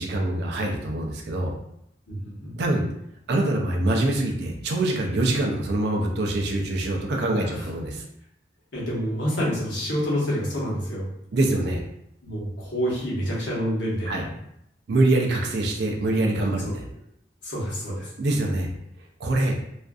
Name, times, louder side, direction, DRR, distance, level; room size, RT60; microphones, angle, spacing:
voice 1, 0.0-1.5 2.6-2.8 3.3-8.1 11.3-11.8 14.1-14.2 14.9-16.8 18.2-18.7 19.2-19.6, right 2 dB, 60° right, 1 dB, 0.4 m, -24 dB
voice 2, 2.1-2.5 7.4-7.7 8.7-11.0 12.2-14.3 16.4-16.8 17.4-18.1, equal, 75° left, -6 dB, 1.0 m, -28 dB
2.5 x 2.4 x 2.3 m, 0.76 s
head